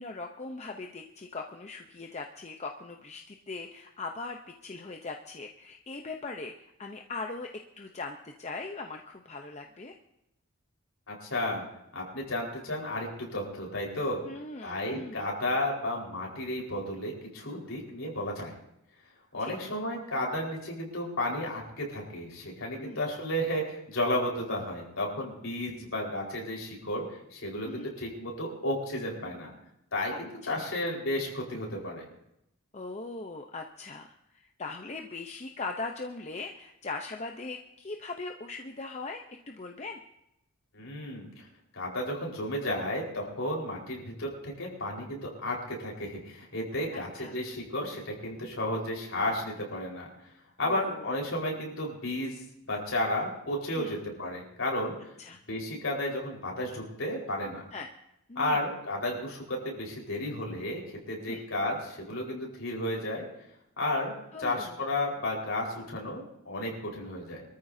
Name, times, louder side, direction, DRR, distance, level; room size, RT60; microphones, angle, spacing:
voice 1, 0.0-7.5 7.8-10.0 14.2-15.3 19.4-19.5 22.8-23.0 27.6-27.9 30.1-30.7 32.7-34.1 34.6-40.0 47.2-47.4 50.6-51.1 53.8-54.0 55.2-55.4 57.7-57.9 58.3-58.6 61.3-61.4 64.3-64.8, left 3 dB, 30° left, 3 dB, 0.7 m, -40 dB
voice 2, 11.1-11.6 11.9-14.2 14.6-18.5 19.3-27.0 27.3-29.5 29.9-32.0 40.7-41.4 41.7-50.1 50.6-52.3 52.7-55.0 55.5-57.7 58.3-60.8 61.1-63.2 63.8-64.1 64.4-67.4, left 1 dB, 60° left, -2 dB, 4.5 m, -33 dB
25.0 x 14.0 x 2.7 m, 0.82 s
head